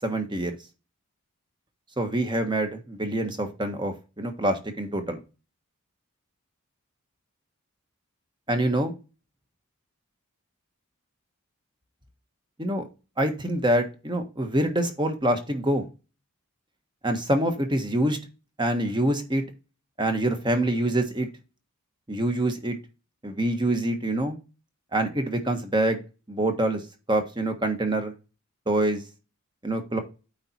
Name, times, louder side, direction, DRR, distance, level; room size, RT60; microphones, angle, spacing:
voice 1, 0.0-0.5 2.0-5.2 8.5-8.9 12.6-12.8 13.2-15.9 17.0-18.2 18.6-19.4 20.0-21.3 22.1-22.8 23.2-24.4 24.9-26.0 26.3-26.8 27.1-28.1 28.7-29.0 29.6-30.0, right 1 dB, 20° right, 6 dB, 1.3 m, -25 dB
8.8 x 4.1 x 4.4 m, 0.30 s
head